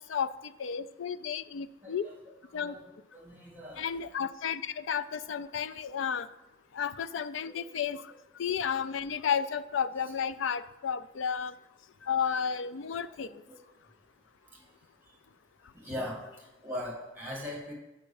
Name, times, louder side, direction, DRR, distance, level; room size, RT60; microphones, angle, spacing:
voice 1, 0.1-2.1 2.5-2.7 3.8-6.3 6.7-8.0 8.4-11.5 12.0-13.3, left 7 dB, 75° left, 14 dB, 0.4 m, -32 dB
voice 2, 1.8-2.1 2.5-3.9 13.0-13.6 14.4-14.7 15.1-15.2 15.7-17.7, left 1 dB, 10° right, -3 dB, 2.2 m, -41 dB
6.8 x 5.4 x 7.0 m, 0.99 s
head